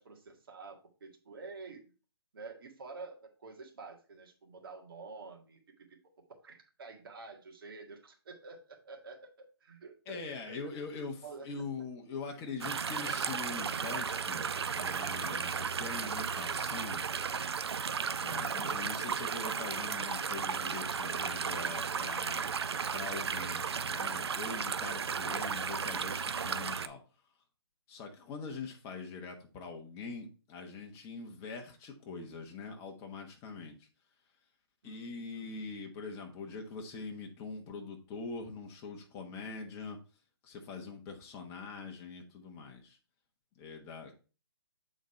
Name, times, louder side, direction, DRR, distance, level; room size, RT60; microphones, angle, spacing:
voice 1, 0.0-1.9 2.3-6.0 6.4-10.6 11.2-11.5 34.8-35.7, right 4 dB, 60° right, 3 dB, 1.8 m, -49 dB
voice 2, 10.1-14.5 14.7-17.0 18.2-22.5 22.9-27.0 27.9-33.9 34.8-40.0 40.4-43.0 43.6-44.1, left 4 dB, 20° left, 3 dB, 1.2 m, -43 dB
sound 1, 12.6-26.9, right 6 dB, 75° right, 0.5 m, -34 dB
7.8 x 4.0 x 4.3 m, 0.35 s
hypercardioid pair, 145°, 14 cm